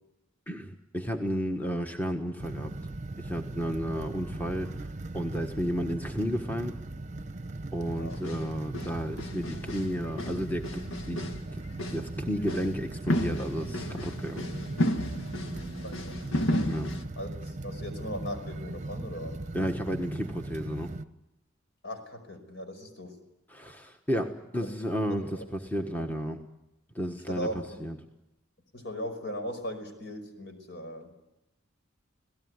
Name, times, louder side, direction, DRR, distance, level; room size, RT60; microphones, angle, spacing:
voice 1, 0.5-2.7 3.2-6.8 7.7-10.8 11.1-11.3 11.9-14.4 16.7-16.9 19.5-20.9 23.5-26.4 26.9-28.0, equal, 10° left, 4 dB, 1.3 m, -32 dB
sound 1, 2.4-21.0, right 2 dB, 35° right, 0.9 m, -39 dB
sound 2, 8.1-8.5 8.7-9.9 10.2-11.4 11.7-12.1 12.5-12.7 13.1-17.1, left 1 dB, 75° left, 1.6 m, -32 dB
voice 2, 15.8-16.2 17.2-19.4 21.8-23.2 24.6-24.7 25.3-25.4 26.0-26.1 27.3-27.9 28.7-31.2, equal, 55° left, 7 dB, 5.3 m, -38 dB
26.5 x 18.0 x 9.6 m, 0.91 s
head